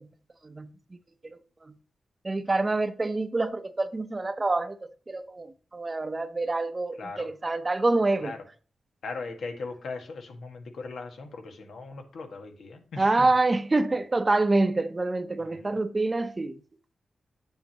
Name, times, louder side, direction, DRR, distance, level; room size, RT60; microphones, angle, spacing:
voice 1, 2.2-4.7 5.1-5.5 5.7-8.3 13.0-16.5, right 2 dB, 30° right, 0.8 m, -26 dB
voice 2, 7.0-7.3 8.2-8.5 9.0-13.3 15.4-15.8, left 3 dB, 85° left, 1.7 m, -39 dB
8.1 x 7.5 x 3.0 m
cardioid pair, 80°, 0 cm